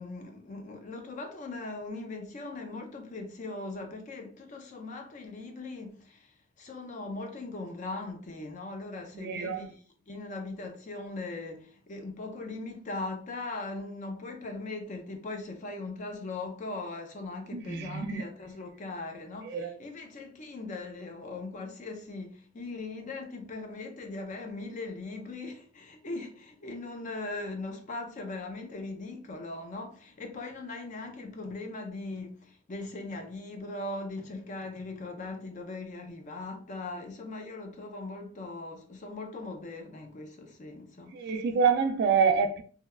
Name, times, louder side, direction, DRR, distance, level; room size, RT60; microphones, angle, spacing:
voice 1, 0.0-6.3 6.6-9.8 10.1-41.4, left 2 dB, 40° left, 0.4 m, -39 dB
voice 2, 9.1-9.6 17.5-18.2 19.4-19.8 41.1-42.6, right 6 dB, 55° right, 0.3 m, -27 dB
2.7 x 2.1 x 2.3 m
head